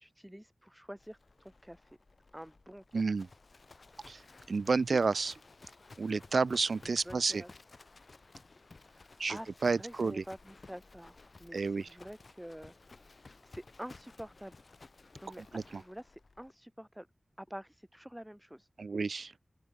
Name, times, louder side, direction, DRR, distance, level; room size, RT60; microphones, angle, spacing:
voice 1, 0.0-2.0 2.3-3.1 7.1-7.5 8.8-13.1 13.4-14.6 15.2-17.1 17.4-18.7, equal, 5° right, 2.0 m, -48 dB
Livestock farm animals working animals, 1.0-16.5, left 3 dB, 55° left, 3.8 m, -56 dB
voice 2, 2.9-3.3 4.1-4.2 4.5-5.4 6.0-7.4 9.2-9.4 9.6-10.2 11.5-11.9 15.4-15.8 18.8-19.3, right 4 dB, 80° right, 0.4 m, -30 dB
open air
wide cardioid pair, 70°, 0 cm